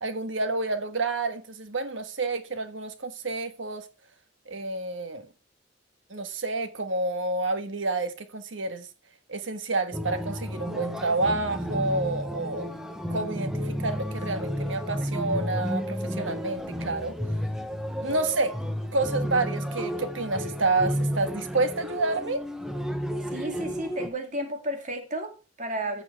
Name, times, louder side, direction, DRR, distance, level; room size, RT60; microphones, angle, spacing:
voice 1, 0.0-3.8 4.5-5.3 6.1-8.9 9.3-12.7 13.1-17.2 18.0-18.6 18.9-22.4, right 3 dB, 75° right, 1.5 m, -29 dB
sound 1, 9.9-24.1, equal, 5° right, 1.0 m, -32 dB
voice 2, 23.3-26.0, right 1 dB, 40° right, 2.5 m, -33 dB
14.5 x 6.0 x 4.7 m
head